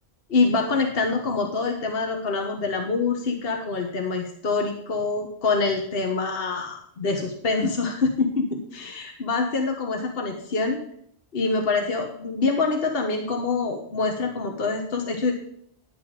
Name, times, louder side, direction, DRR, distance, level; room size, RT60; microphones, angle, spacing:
voice 1, 0.3-10.8 11.3-15.3, left 3 dB, 60° left, 3 dB, 1.4 m, -25 dB
10.5 x 8.3 x 5.0 m, 0.65 s
omnidirectional pair, 1.1 m